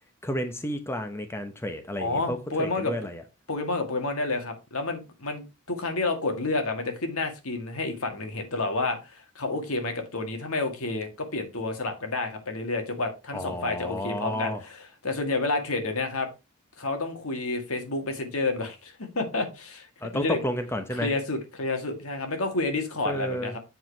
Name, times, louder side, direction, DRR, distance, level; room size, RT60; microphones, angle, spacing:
voice 1, 0.2-3.2 13.3-14.6 20.0-21.1 23.0-23.5, left 1 dB, 10° left, 0.8 m, -31 dB
voice 2, 2.0-2.9 3.5-16.3 16.8-19.9 20.1-20.4 20.9-23.6, left 3 dB, 70° left, 1.8 m, -30 dB
7.8 x 4.9 x 4.5 m
head